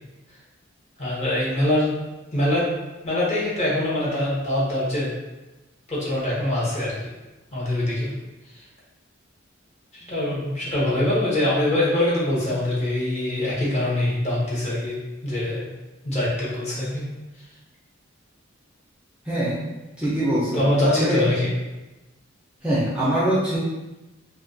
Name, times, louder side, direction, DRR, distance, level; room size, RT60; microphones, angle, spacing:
voice 1, 1.0-1.9 2.3-2.7 3.0-5.1 5.9-6.9 7.5-8.1 9.9-15.6 16.0-17.0 20.5-21.5, left 1 dB, 35° left, -7 dB, 0.7 m, -23 dB
voice 2, 19.3-19.6 20.0-21.2 22.6-23.6, right 1 dB, 5° right, -9 dB, 0.4 m, -23 dB
2.2 x 2.1 x 2.5 m, 1.0 s
head